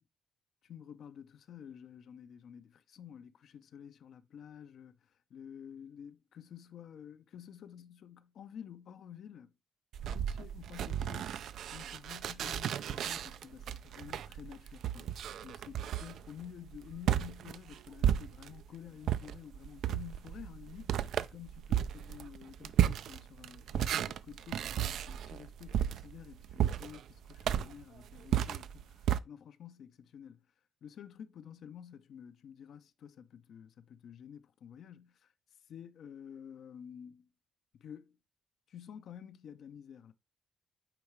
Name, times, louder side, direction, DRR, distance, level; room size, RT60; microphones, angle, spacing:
voice 1, 0.7-9.5 10.1-30.5 30.8-35.3 35.7-37.3 37.7-38.2 38.7-40.1, left 9 dB, 65° left, 0.6 m, -51 dB
sound 1, 9.9-18.7 19.0-29.2, right 10 dB, 75° right, 0.3 m, -34 dB
9.0 x 3.6 x 3.2 m
cardioid pair, 90°, 0 cm